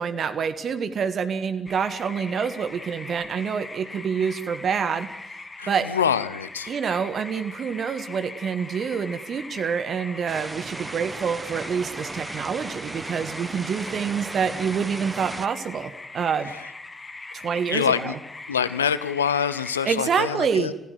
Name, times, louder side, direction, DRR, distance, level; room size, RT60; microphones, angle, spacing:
voice 1, 0.0-5.1 5.7-5.9 6.7-16.5 17.3-18.2 19.8-20.7, right 6 dB, 50° right, 11 dB, 1.6 m, -27 dB
sound 1, 1.7-20.0, left 3 dB, 25° left, 2.4 m, -41 dB
voice 2, 5.6-6.7 17.7-18.1 18.5-20.7, left 7 dB, 85° left, 16 dB, 0.8 m, -25 dB
sound 2, 10.3-15.5, right 3 dB, 30° right, 1.1 m, -37 dB
29.0 x 15.5 x 7.9 m, 0.91 s
figure-of-eight pair, 45°, 0 cm